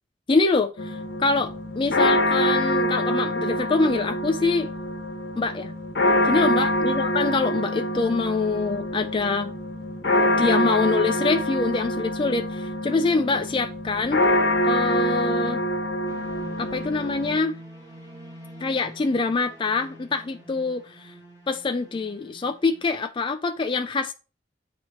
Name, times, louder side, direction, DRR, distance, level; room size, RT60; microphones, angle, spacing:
voice 1, 0.3-4.7 5.4-5.7 6.2-9.5 10.4-14.2 14.6-15.6 16.6-17.5 18.6-21.1 21.5-24.1, left 3 dB, 30° left, 0.4 m, -25 dB
sound 1, 0.8-17.4, left 1 dB, 70° left, 1.1 m, -25 dB
Slow Dramatic Orchestra Music, 16.1-22.8, right 1 dB, 20° right, 3.0 m, -45 dB
8.4 x 3.1 x 4.3 m
head